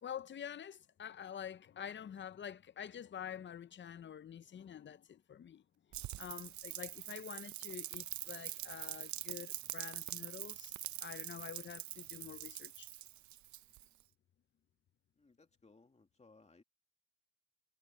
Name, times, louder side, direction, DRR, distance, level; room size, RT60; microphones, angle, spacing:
voice 1, 0.0-5.6 6.2-12.9, left 9 dB, 40° left, 0.6 m, -47 dB
Rain, 5.9-14.0, right 14 dB, 70° right, 0.7 m, -44 dB
voice 2, 15.2-16.6, left 3 dB, 20° left, 2.4 m, -64 dB
cardioid pair, 90°, 30 cm